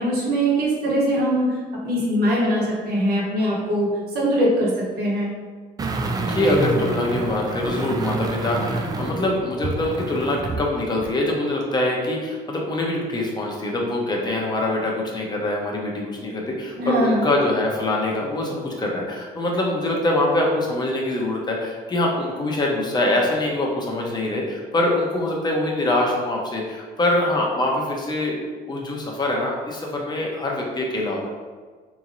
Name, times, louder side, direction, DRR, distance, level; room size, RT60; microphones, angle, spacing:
voice 1, 0.0-4.7 5.0-5.3 16.8-17.2, equal, 65° right, -5 dB, 1.2 m, -22 dB
sound 1, 5.8-10.7 11.0-11.1, right 3 dB, 20° right, 0.3 m, -27 dB
voice 2, 6.3-28.4 28.6-31.3, left 1 dB, 25° left, -2 dB, 0.8 m, -24 dB
3.7 x 3.0 x 2.6 m, 1.5 s
cardioid pair, 110°, 17 cm